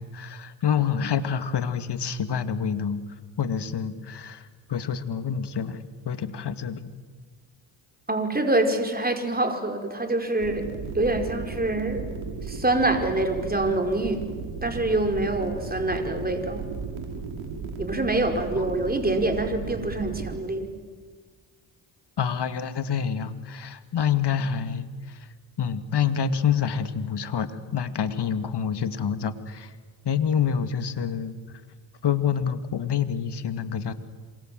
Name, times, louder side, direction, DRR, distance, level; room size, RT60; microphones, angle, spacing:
voice 1, 0.0-3.0 3.4-6.9 18.6-18.7 22.2-25.3 25.6-29.7 30.0-31.4 32.0-33.9, left 7 dB, 55° left, 10 dB, 2.3 m, -27 dB
voice 2, 8.1-10.7 10.9-12.1 12.5-14.2 14.6-16.6 17.8-20.7, right 2 dB, 20° right, 5 dB, 5.0 m, -25 dB
sound 1, 10.4-20.4, right 5 dB, 80° right, 5.0 m, -35 dB
27.0 x 25.0 x 7.8 m, 1.5 s
supercardioid pair, 55°, 49 cm